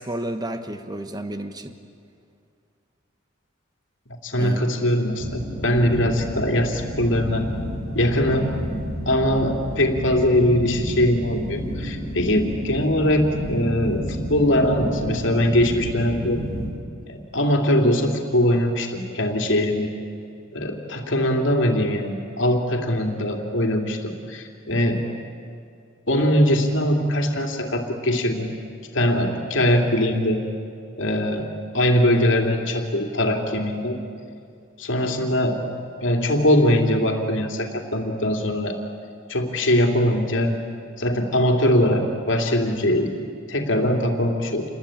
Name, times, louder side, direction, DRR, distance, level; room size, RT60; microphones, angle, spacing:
voice 1, 0.0-1.7 4.3-4.7, right 1 dB, 20° right, 8 dB, 1.3 m, -31 dB
voice 2, 4.2-7.5 7.9-8.5 9.1-16.4 17.1-19.9 20.5-25.1 26.1-28.5 28.9-30.4 30.9-31.5 31.7-34.0 34.8-35.6 36.0-38.8 39.3-40.6 41.0-43.1 43.5-44.6, left 1 dB, 65° left, 3 dB, 2.9 m, -21 dB
sound 1, 5.2-16.7, equal, 50° right, 6.6 m, -30 dB
28.0 x 21.5 x 9.0 m, 2.4 s
head